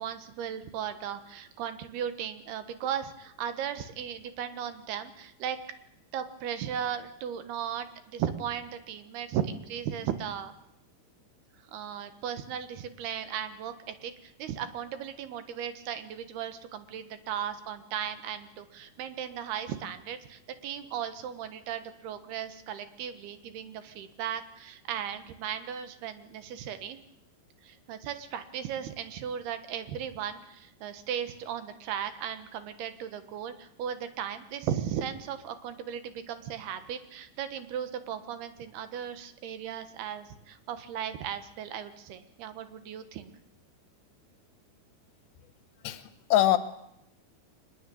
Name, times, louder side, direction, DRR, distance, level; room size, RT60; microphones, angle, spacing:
voice 1, 0.0-5.6 6.1-10.5 11.7-27.0 27.6-43.3, right 9 dB, 70° right, 10 dB, 3.3 m, -36 dB
voice 2, 45.8-46.6, left 13 dB, 80° left, 12 dB, 3.3 m, -24 dB
23.5 x 20.5 x 8.5 m, 0.79 s
omnidirectional pair, 4.9 m